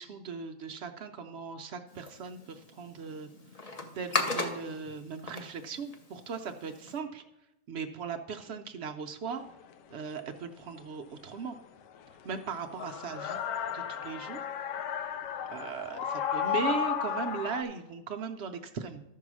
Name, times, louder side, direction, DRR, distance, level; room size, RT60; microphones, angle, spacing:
voice 1, 0.0-3.3 3.9-7.2 7.7-9.4 9.9-11.6 12.2-13.4 13.7-14.4 15.5-19.0, right 5 dB, 90° right, 5 dB, 0.5 m, -38 dB
sound 1, 1.9-7.0, left 3 dB, 40° left, 0.5 m, -37 dB
sound 2, 9.4-9.5 12.0-17.6, left 8 dB, 80° left, 1.2 m, -33 dB
13.0 x 4.6 x 6.1 m, 0.91 s
omnidirectional pair, 1.8 m